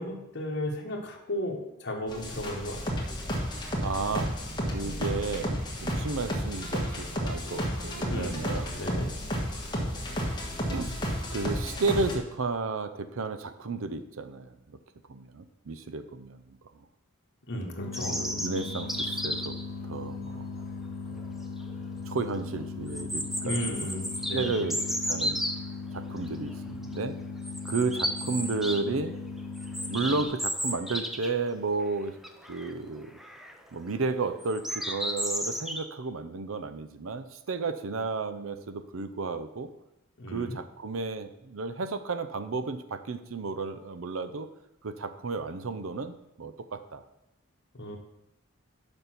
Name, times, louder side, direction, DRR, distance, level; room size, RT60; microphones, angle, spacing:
voice 1, 0.0-3.0 8.1-8.4 8.7-9.1 17.5-18.2 23.4-24.7 40.2-40.5 47.7-48.0, left 1 dB, 55° left, 1 dB, 1.3 m, -34 dB
sound 1, 2.1-12.1, equal, 20° left, 1.4 m, -32 dB
voice 2, 3.6-4.3 4.7-8.7 10.7-14.8 15.1-16.9 18.1-19.6 19.8-20.6 21.1-21.3 22.1-23.8 24.3-25.4 25.9-27.2 27.6-29.1 29.9-32.2 32.5-33.2 33.7-39.7 40.3-44.5 44.8-47.0, right 3 dB, 70° right, 11 dB, 0.6 m, -33 dB
sound 2, 17.8-30.2, left 4 dB, 80° left, 0.9 m, -38 dB
sound 3, 17.9-19.6 21.2-21.3 21.7-21.8 22.9-25.6 26.3-26.5 26.8-27.0 27.4-28.8 29.1-31.4 31.7-31.8 32.2-32.7 33.2-33.6 34.4-35.8, equal, ahead, 0.5 m, -33 dB
6.8 x 5.4 x 5.9 m, 0.88 s
head